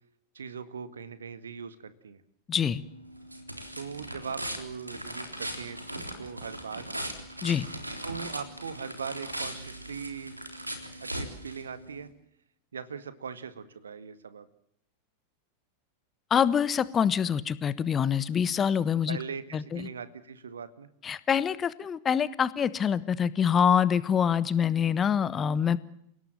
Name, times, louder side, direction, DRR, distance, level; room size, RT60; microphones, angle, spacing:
voice 1, 0.3-2.2 3.7-6.9 8.0-10.4 11.0-12.1 12.7-14.5 19.1-20.9, right 6 dB, 70° right, 13 dB, 1.9 m, -40 dB
voice 2, 2.5-2.8 7.4-7.7 16.3-19.2 19.5-19.9 21.0-25.8, left 8 dB, 25° left, 17 dB, 1.2 m, -25 dB
sound 1, 2.6-12.1, right 1 dB, 85° right, 3.6 m, -39 dB
29.5 x 18.0 x 7.5 m, 0.72 s
figure-of-eight pair, 90°, 0 cm